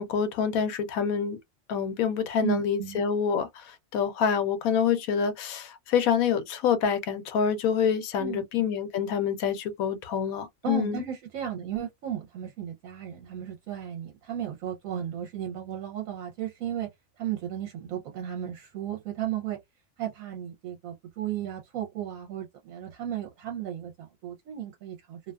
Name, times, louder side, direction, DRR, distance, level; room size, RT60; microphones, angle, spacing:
voice 1, 0.0-1.4 1.7-11.0, left 7 dB, 90° left, 1.0 m, -27 dB
voice 2, 2.4-3.0 8.2-8.7 10.6-16.9 17.2-19.6 20.0-25.2, right 11 dB, 80° right, 1.0 m, -35 dB
2.6 x 2.2 x 2.3 m
omnidirectional pair, 1.4 m